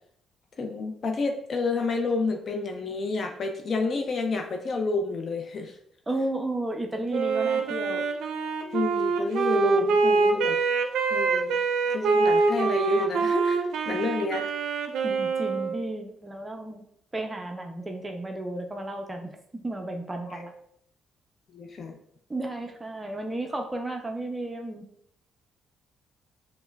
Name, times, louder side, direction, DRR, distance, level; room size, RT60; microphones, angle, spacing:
voice 1, 0.6-5.8 8.7-10.6 11.1-11.6 11.9-14.5 20.3-20.4 21.5-22.0, left 3 dB, 50° left, 4 dB, 0.4 m, -29 dB
voice 2, 6.1-8.1 15.0-16.8 17.1-20.5 22.3-24.9, right 1 dB, 20° right, 3 dB, 0.4 m, -33 dB
Wind instrument woodwind instrument, 7.1-16.0, right 4 dB, 80° right, 0.4 m, -25 dB
5.3 x 2.0 x 2.2 m, 0.69 s
cardioid pair, 90°, 0 cm